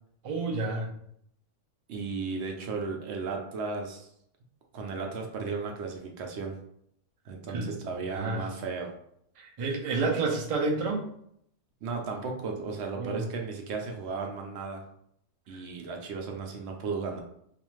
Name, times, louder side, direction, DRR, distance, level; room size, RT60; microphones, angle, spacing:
voice 1, 0.2-0.9 7.5-7.7 8.1-8.4 9.4-11.1 13.0-13.3 15.5-15.6, right 3 dB, 50° right, 0 dB, 0.4 m, -30 dB
voice 2, 1.9-4.1 4.7-6.6 7.3-8.9 11.8-14.8 15.5-17.2, right 4 dB, 70° right, 2 dB, 0.8 m, -35 dB
2.4 x 2.4 x 3.0 m, 0.71 s
omnidirectional pair, 1.2 m